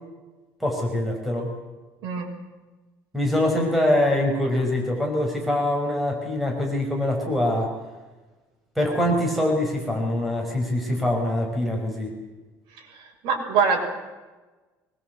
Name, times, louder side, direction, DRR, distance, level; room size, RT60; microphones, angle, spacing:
voice 1, 0.6-1.5 3.1-7.7 8.7-12.1, left 1 dB, ahead, 0 dB, 5.0 m, -24 dB
voice 2, 13.0-13.8, right 5 dB, 70° right, 2 dB, 6.7 m, -23 dB
24.0 x 21.5 x 8.1 m, 1.2 s
cardioid pair, 165°, 8 cm